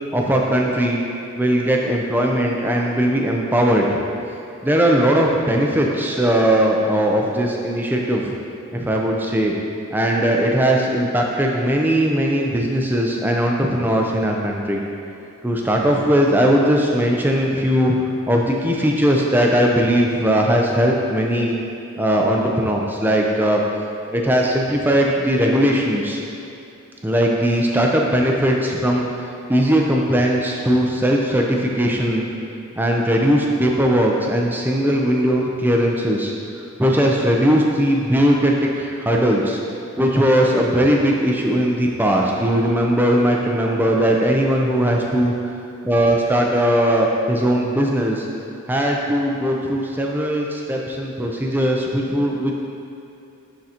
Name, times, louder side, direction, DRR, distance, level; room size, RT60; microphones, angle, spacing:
voice 1, 0.1-1.0 1.4-4.0 4.6-8.3 8.7-9.6 9.9-14.8 15.4-18.0 18.3-21.6 22.0-23.6 24.1-26.2 27.0-32.3 32.8-36.3 36.8-39.6 40.0-45.3 45.8-48.3 48.7-52.5, equal, 10° right, -1 dB, 0.5 m, -19 dB
10.5 x 3.8 x 2.8 m, 2.7 s
head